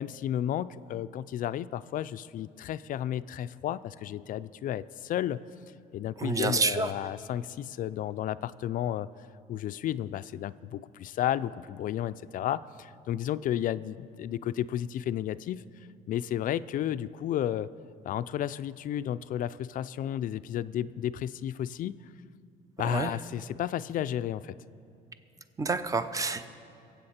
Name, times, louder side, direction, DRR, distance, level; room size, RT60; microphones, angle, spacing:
voice 1, 0.0-5.4 5.9-9.1 9.5-15.6 16.1-17.7 18.0-22.0 22.8-24.6, left 11 dB, 55° left, 14 dB, 0.4 m, -32 dB
voice 2, 6.2-6.9 22.8-23.1 25.6-26.5, right 3 dB, 20° right, 11 dB, 0.7 m, -28 dB
23.5 x 8.0 x 4.3 m, 2.7 s
cardioid pair, 110°, 17 cm